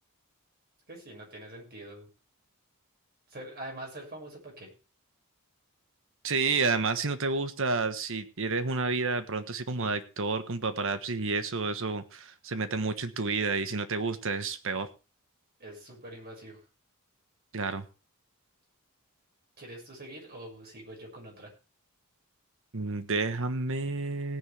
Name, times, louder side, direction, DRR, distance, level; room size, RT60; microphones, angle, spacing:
voice 1, 0.9-2.1 3.3-4.7 15.6-16.6 19.6-21.5, right 1 dB, 45° right, 0 dB, 6.4 m, -44 dB
voice 2, 6.2-14.9 17.5-17.8 22.7-24.4, right 4 dB, 65° right, 11 dB, 1.4 m, -30 dB
17.5 x 10.0 x 3.5 m, 0.32 s
head